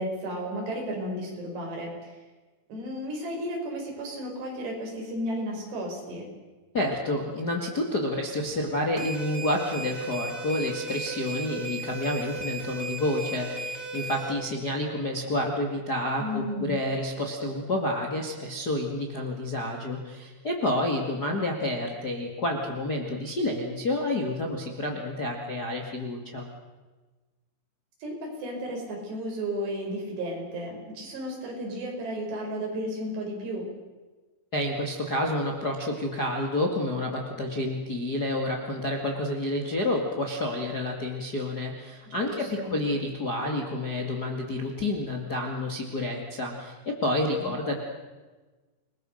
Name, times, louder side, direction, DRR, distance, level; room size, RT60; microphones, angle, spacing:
voice 1, 0.0-1.9 2.7-6.3 16.2-16.7 28.0-33.7 42.2-42.8 47.4-47.5, equal, 55° right, 0 dB, 7.1 m, -33 dB
voice 2, 6.7-26.5 34.5-47.7, left 1 dB, 90° left, 0 dB, 0.8 m, -29 dB
sound 1, 9.0-14.3, right 2 dB, 20° right, 2.8 m, -36 dB
28.5 x 21.0 x 6.5 m, 1.3 s
omnidirectional pair, 5.9 m